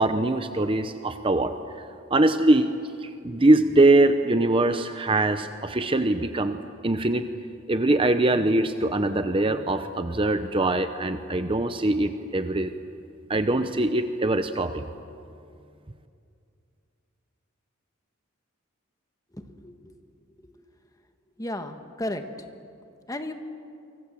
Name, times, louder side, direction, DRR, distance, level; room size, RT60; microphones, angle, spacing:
voice 1, 0.0-1.5 2.1-2.7 3.0-7.3 7.7-12.7 13.3-14.8, right 2 dB, 25° right, 9 dB, 0.8 m, -22 dB
voice 2, 19.3-19.9 20.4-20.5 21.4-22.2 23.1-23.3, left 1 dB, 15° left, 7 dB, 1.5 m, -34 dB
29.5 x 24.5 x 7.6 m, 2.5 s
head